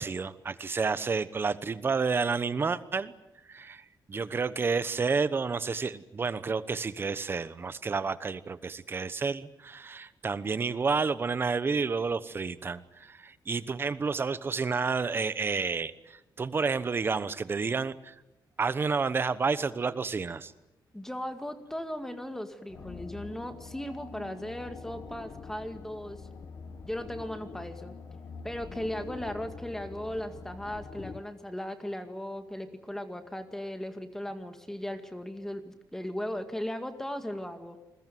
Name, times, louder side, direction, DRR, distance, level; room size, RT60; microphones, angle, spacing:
voice 1, 0.0-3.1 3.5-18.1 18.6-20.5, right 4 dB, 30° right, 15 dB, 1.1 m, -30 dB
voice 2, 20.9-26.3 26.8-28.0 28.4-37.8, left 1 dB, 5° left, 8 dB, 2.1 m, -37 dB
sound 1, 22.7-31.2, left 5 dB, 45° left, 1.7 m, -45 dB
28.0 x 21.5 x 9.3 m, 0.98 s
wide cardioid pair, 180°, 8 cm